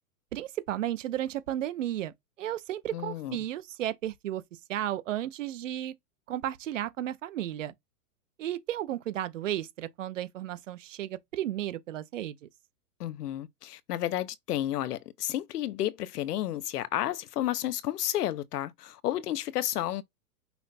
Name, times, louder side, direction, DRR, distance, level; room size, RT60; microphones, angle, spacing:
voice 1, 0.3-2.1 2.4-4.4 4.7-5.9 6.3-7.7 8.4-12.4, right 12 dB, 55° right, 0.6 m, -33 dB
voice 2, 2.9-3.4 13.0-20.0, left 13 dB, 85° left, 0.7 m, -31 dB
5.6 x 2.1 x 4.1 m
supercardioid pair, 175°, 46 cm